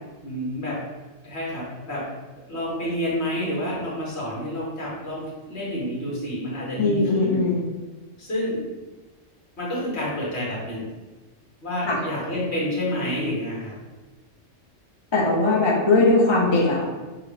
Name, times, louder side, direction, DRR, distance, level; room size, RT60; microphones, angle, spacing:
voice 1, 0.2-0.8 1.2-2.0 2.5-7.0 7.3-7.4 8.2-8.6 9.6-10.9 11.6-13.7, left 1 dB, 60° left, -6 dB, 1.8 m, -29 dB
voice 2, 6.8-7.6 11.9-12.0 15.1-16.8, left 2 dB, 30° left, -2 dB, 0.6 m, -20 dB
6.6 x 2.4 x 3.3 m, 1.2 s
omnidirectional pair, 1.3 m